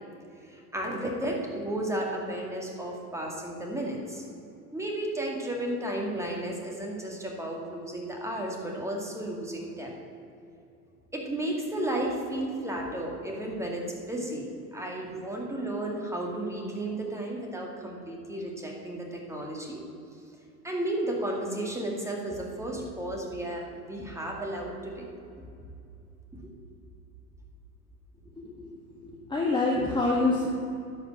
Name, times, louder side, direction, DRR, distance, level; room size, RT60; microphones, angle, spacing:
voice 1, 0.5-4.2 4.7-9.9 11.1-19.8 20.6-25.1 26.3-26.5 29.7-29.8, right 1 dB, 5° right, -1 dB, 2.5 m, -33 dB
voice 2, 28.4-30.5, left 3 dB, 10° left, -3 dB, 1.5 m, -27 dB
11.0 x 5.3 x 8.7 m, 2.6 s
hypercardioid pair, 100°, 45 cm